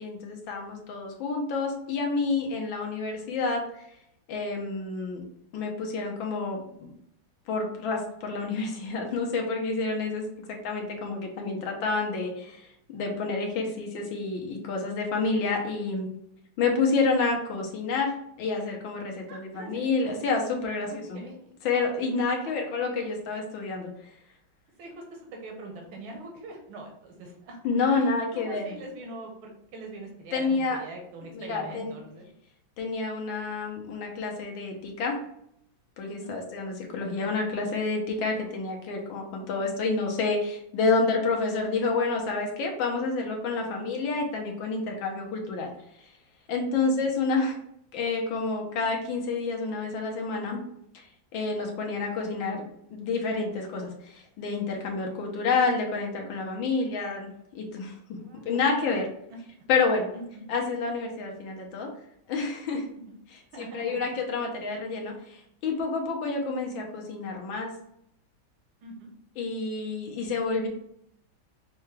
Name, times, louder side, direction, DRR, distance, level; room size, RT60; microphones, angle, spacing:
voice 1, 0.0-3.6 4.3-5.2 5.5-6.9 7.5-12.6 12.9-16.1 16.6-18.1 18.4-21.2 21.6-23.9 27.6-28.7 30.3-30.8 31.4-31.9 32.8-35.2 36.0-45.7 46.5-47.6 47.9-50.6 51.3-52.6 52.9-58.2 58.4-59.1 59.7-60.1 60.5-61.9 62.3-62.8 63.6-67.7 69.4-70.7, left 4 dB, 75° left, 1 dB, 1.7 m, -29 dB
voice 2, 19.3-19.9 20.9-21.5 22.4-22.7 24.8-27.6 27.9-32.3 36.2-36.5 43.7-43.9 46.8-47.1 58.2-58.6 59.3-59.4 60.1-60.4 63.1-63.2 63.5-64.1 68.8-69.1 70.2-70.4, right 2 dB, 90° right, 1 dB, 1.7 m, -43 dB
6.0 x 2.3 x 3.2 m, 0.74 s
omnidirectional pair, 2.2 m